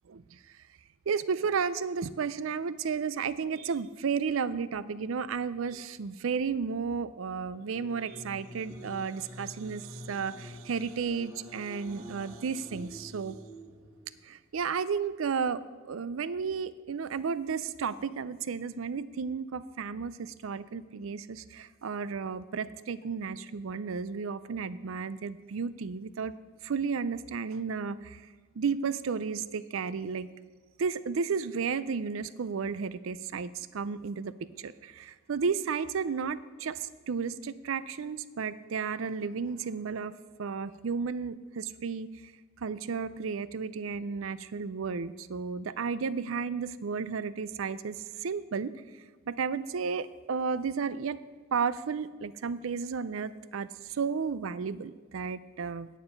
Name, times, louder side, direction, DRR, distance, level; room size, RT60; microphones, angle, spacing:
voice 1, 0.1-0.4 1.1-13.4 14.2-26.3 26.6-28.2 28.6-30.3 30.8-40.1 40.4-42.1 42.6-48.7 49.3-51.2 51.5-55.9, right 5 dB, 65° right, 16 dB, 0.4 m, -33 dB
sound 1, 7.4-14.3, equal, 20° right, 1.8 m, -48 dB
9.3 x 8.8 x 5.2 m, 1.4 s
head